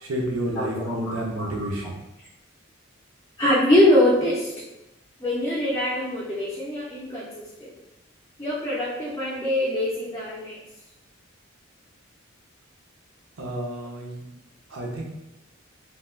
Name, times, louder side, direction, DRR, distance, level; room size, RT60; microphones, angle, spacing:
voice 1, 0.0-2.0 13.4-14.2 14.7-15.0, right 1 dB, 75° right, -1 dB, 0.6 m, -30 dB
voice 2, 0.6-1.5 3.4-4.5 5.2-7.7 8.4-10.6, left 1 dB, 15° left, -7 dB, 0.4 m, -23 dB
3.5 x 2.2 x 2.4 m, 0.93 s
head